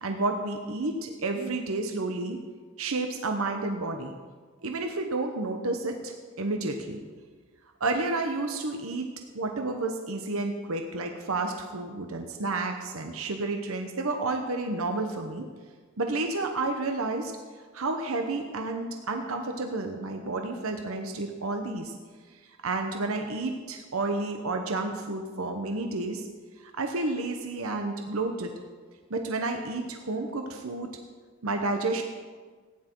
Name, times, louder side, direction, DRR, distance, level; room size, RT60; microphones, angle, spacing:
voice 1, 0.0-2.4 2.8-4.1 4.6-7.0 7.8-15.5 16.0-17.3 17.7-22.0 22.3-26.3 26.6-28.5 29.1-30.9 31.4-32.0, right 2 dB, 75° right, 4 dB, 1.0 m, -31 dB
16.0 x 10.0 x 4.6 m, 1.5 s
head